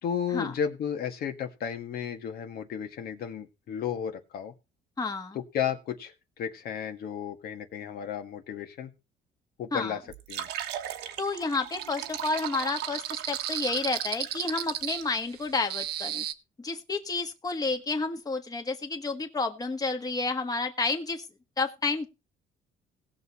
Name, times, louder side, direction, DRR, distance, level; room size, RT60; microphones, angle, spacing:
voice 1, 0.0-4.5 5.3-8.9 9.6-10.0 10.3-10.5, left 8 dB, 65° left, 5 dB, 1.8 m, -33 dB
voice 2, 5.0-5.4 9.7-10.0 11.2-16.2 16.6-21.3 21.6-22.1, left 3 dB, 20° left, 5 dB, 1.5 m, -30 dB
sound 1, 10.1-15.0, right 11 dB, 90° right, 1.3 m, -39 dB
sound 2, 11.7-16.3, right 12 dB, 70° right, 0.9 m, -34 dB
18.0 x 6.6 x 4.2 m, 0.28 s
cardioid pair, 110°, 17 cm